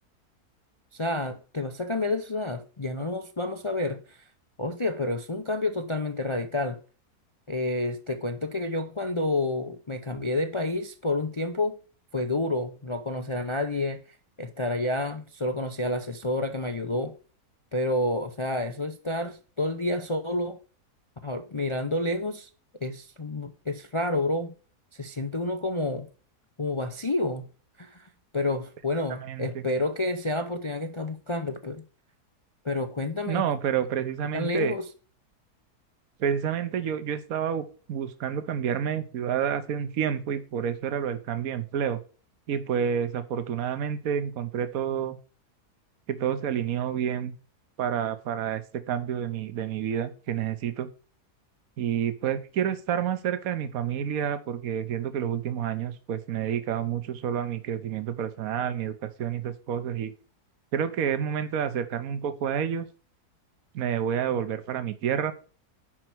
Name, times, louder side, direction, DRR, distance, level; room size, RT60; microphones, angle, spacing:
voice 1, 0.9-4.2 4.6-6.8 7.5-11.8 12.1-14.0 14.4-17.1 17.7-20.6 21.2-22.5 22.8-24.5 24.9-26.1 26.6-27.5 27.8-31.8 32.6-33.5 34.3-34.9, left 2 dB, 40° left, 0.4 m, -29 dB
voice 2, 29.2-29.6 33.3-34.7 36.2-42.0 42.5-45.2 46.1-47.3 47.8-50.9 51.8-60.1 60.7-62.9 63.7-65.3, right 8 dB, 65° right, 1.4 m, -29 dB
11.0 x 4.5 x 6.1 m
omnidirectional pair, 1.7 m